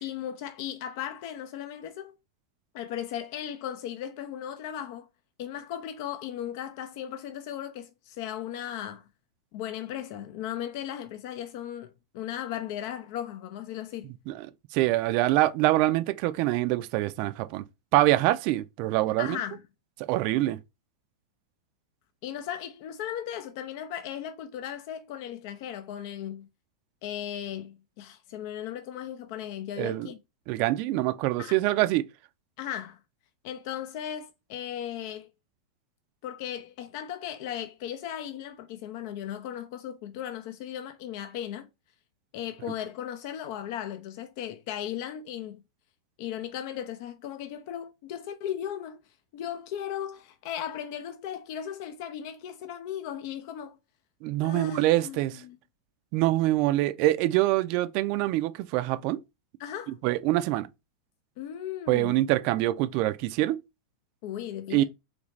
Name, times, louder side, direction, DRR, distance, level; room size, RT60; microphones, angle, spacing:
voice 1, 0.0-2.1 2.7-5.1 5.4-9.1 9.5-14.1 19.2-19.6 22.2-26.5 27.0-30.2 31.4-31.6 32.6-33.0 33.4-35.3 36.2-41.7 42.3-45.6 46.2-49.0 49.3-53.8 54.4-55.6 59.6-60.0 61.4-62.2 64.2-64.8, left 10 dB, 55° left, 0.5 m, -36 dB
voice 2, 14.7-17.6 17.9-19.4 20.1-20.6 29.8-30.1 30.5-32.1 54.2-55.4 56.1-59.2 60.0-60.7 61.9-63.6 64.7-64.8, right 16 dB, 50° right, 0.4 m, -25 dB
3.2 x 2.5 x 3.1 m
hypercardioid pair, 105°, 2 cm